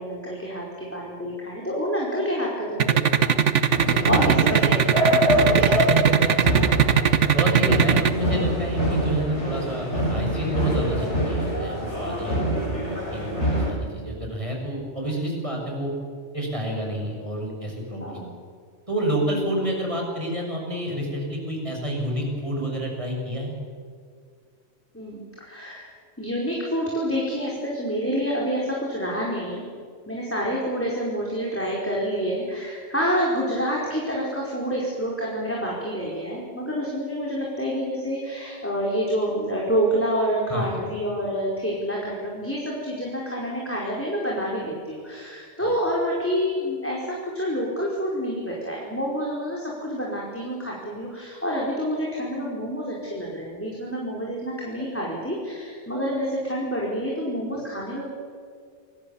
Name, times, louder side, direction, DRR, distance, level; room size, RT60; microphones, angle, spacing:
voice 1, 0.0-3.5 4.0-4.8 5.2-5.7 6.2-6.4 6.7-6.9 7.6-7.8 12.2-12.9 13.3-14.0 18.0-18.3 24.9-25.9 26.2-29.7 30.1-58.0, equal, 10° left, -4 dB, 4.8 m, -28 dB
sound 1, 2.8-8.1, right 8 dB, 85° right, 1.5 m, -18 dB
sound 2, 3.7-13.7, equal, 75° left, 6.7 m, -25 dB
voice 2, 5.9-6.7 7.2-15.9 16.3-18.2 18.9-23.5 40.5-40.8 45.6-45.7, right 1 dB, 25° right, 0 dB, 6.8 m, -29 dB
27.5 x 22.5 x 7.3 m, 2.1 s
omnidirectional pair, 1.2 m